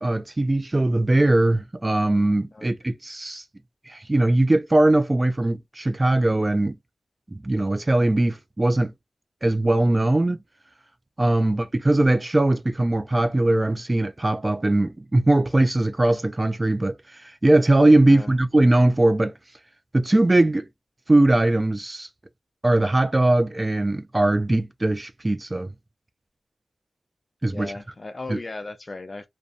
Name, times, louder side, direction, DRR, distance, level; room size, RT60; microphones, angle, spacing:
voice 1, 0.0-3.4 3.9-6.7 7.3-8.9 9.4-10.4 11.2-19.3 19.9-20.7 21.1-22.1 22.6-25.7 27.4-27.7 28.3-28.4, right 2 dB, 25° right, 0.3 m, -20 dB
voice 2, 18.0-18.4 27.5-29.3, left 2 dB, 40° left, 0.5 m, -37 dB
2.6 x 2.1 x 2.4 m
wide cardioid pair, 70°, 0 cm